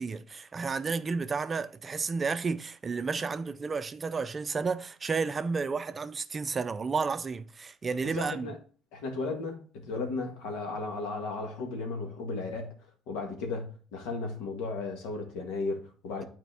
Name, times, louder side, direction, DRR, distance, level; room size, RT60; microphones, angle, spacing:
voice 1, 0.0-8.5, right 4 dB, 30° right, 0.4 m, -32 dB
voice 2, 8.1-8.6 8.9-12.7 13.1-16.3, left 3 dB, 85° left, 1.7 m, -35 dB
9.3 x 4.3 x 3.4 m
cardioid pair, 95°, 0 cm